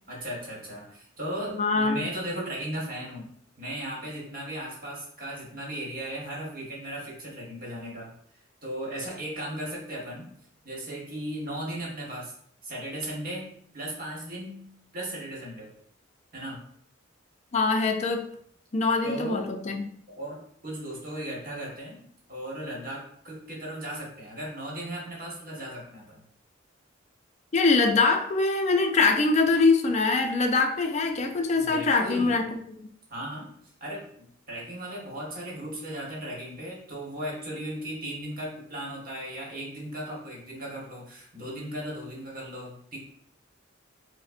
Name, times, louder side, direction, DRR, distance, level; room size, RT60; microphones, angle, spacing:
voice 1, 0.1-3.3 3.6-8.1 8.6-10.3 10.6-12.3 12.6-14.7 14.9-15.7 16.3-16.6 19.0-19.6 20.1-22.0 22.3-26.2 31.5-32.5 33.1-33.5 33.8-43.0, right 1 dB, 45° right, -3 dB, 1.2 m, -36 dB
voice 2, 1.5-2.0 17.5-18.3 18.7-19.9 27.5-32.4, left 3 dB, 35° left, 4 dB, 0.4 m, -23 dB
5.3 x 2.0 x 2.4 m, 0.63 s
head